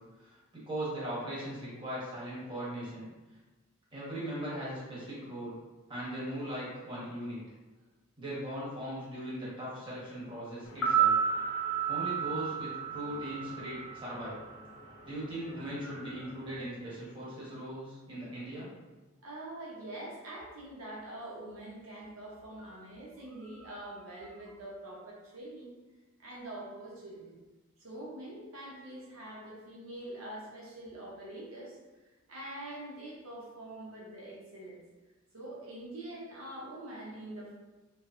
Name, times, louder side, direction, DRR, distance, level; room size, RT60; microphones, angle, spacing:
voice 1, 0.2-3.1 3.9-5.6 5.9-7.4 8.2-11.1 11.9-14.4 15.0-18.7, right 1 dB, 25° right, -8 dB, 1.2 m, -39 dB
sound 1, 10.7-14.8 15.1-15.2, right 7 dB, 80° left, 0.7 m, -31 dB
voice 2, 15.4-16.4 19.2-25.7 26.2-27.4 27.8-31.8 32.3-34.8 35.3-37.5, right 1 dB, 80° right, -5 dB, 0.8 m, -45 dB
4.5 x 2.1 x 2.5 m, 1.2 s
head